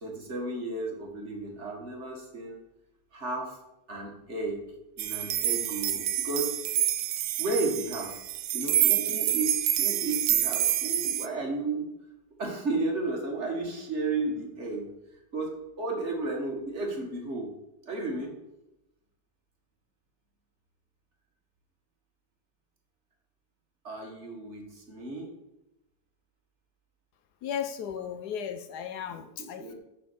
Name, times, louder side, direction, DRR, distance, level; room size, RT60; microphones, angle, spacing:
voice 1, 0.0-2.6 3.1-3.6 3.9-4.7 5.0-6.5 7.4-8.2 8.5-11.9 12.4-14.9 15.3-17.5 17.9-18.4 23.8-25.3 29.4-29.7, right 2 dB, 40° right, 0 dB, 2.0 m, -33 dB
sound 1, 5.0-11.3, right 11 dB, 70° right, 1.0 m, -27 dB
voice 2, 27.4-29.7, left 8 dB, 75° left, 10 dB, 1.1 m, -35 dB
6.8 x 5.5 x 6.9 m, 0.90 s
omnidirectional pair, 1.9 m